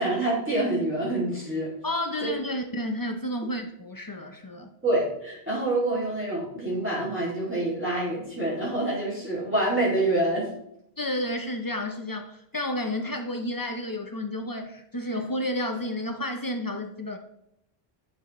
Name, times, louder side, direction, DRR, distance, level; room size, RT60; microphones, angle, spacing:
voice 1, 0.0-1.7 2.2-2.3 4.8-10.5, right 1 dB, 10° right, -9 dB, 2.3 m, -26 dB
voice 2, 1.8-4.7 11.0-17.2, left 1 dB, 30° left, 5 dB, 0.4 m, -31 dB
10.5 x 4.8 x 3.0 m, 0.79 s
omnidirectional pair, 1.1 m